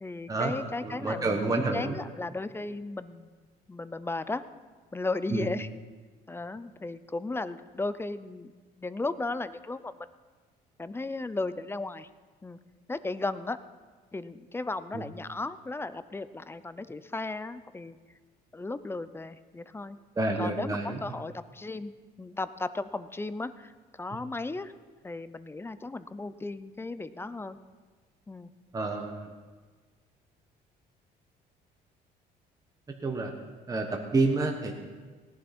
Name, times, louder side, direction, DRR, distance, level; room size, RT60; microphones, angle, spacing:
voice 1, 0.0-4.4 4.9-5.7 6.3-9.9 10.8-12.1 12.4-12.6 12.9-13.6 14.1-18.0 18.5-20.0 20.4-21.9 22.2-24.7 25.0-27.6 28.3-28.5, left 3 dB, 15° left, 13 dB, 0.5 m, -35 dB
voice 2, 0.8-2.0 5.3-5.5 14.9-15.0 20.1-21.2 28.7-29.3 33.0-33.3 33.7-34.7, right 3 dB, 20° right, 3 dB, 1.2 m, -29 dB
18.0 x 11.0 x 4.3 m, 1.4 s
cardioid pair, 110°, 17 cm